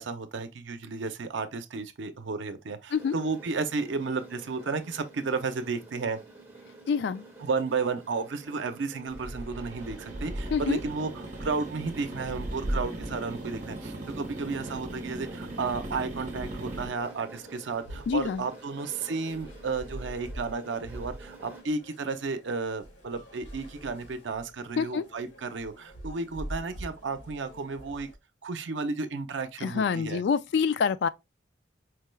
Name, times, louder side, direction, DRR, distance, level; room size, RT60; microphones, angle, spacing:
voice 1, 0.0-6.2 7.4-28.1 28.4-30.2, right 4 dB, 75° right, 0.6 m, -33 dB
sound 1, 2.9-21.6, right 2 dB, 15° right, 1.2 m, -50 dB
voice 2, 6.9-7.2 10.5-10.8 18.1-18.4 24.8-25.0 29.6-31.1, left 6 dB, 65° left, 0.3 m, -26 dB
sound 2, 9.1-28.2, equal, 90° left, 1.5 m, -42 dB
sound 3, 9.4-16.9, right 2 dB, 40° right, 0.9 m, -40 dB
4.6 x 2.2 x 3.1 m
head